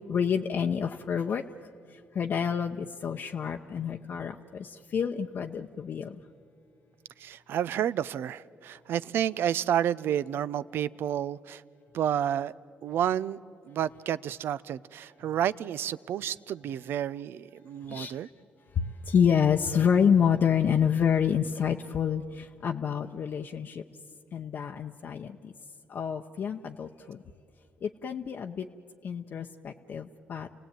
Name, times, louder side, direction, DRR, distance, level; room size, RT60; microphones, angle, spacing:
voice 1, 0.1-1.4 1.9-6.2 17.9-18.2 18.8-23.8 24.3-25.5 25.9-27.2 27.8-28.7 29.0-30.5, left 7 dB, 60° left, 0.8 m, -28 dB
voice 2, 7.2-11.6 11.9-12.5 12.8-13.4 13.7-18.3, right 10 dB, 75° right, 0.5 m, -30 dB
29.5 x 18.0 x 9.0 m
supercardioid pair, 65°, 4 cm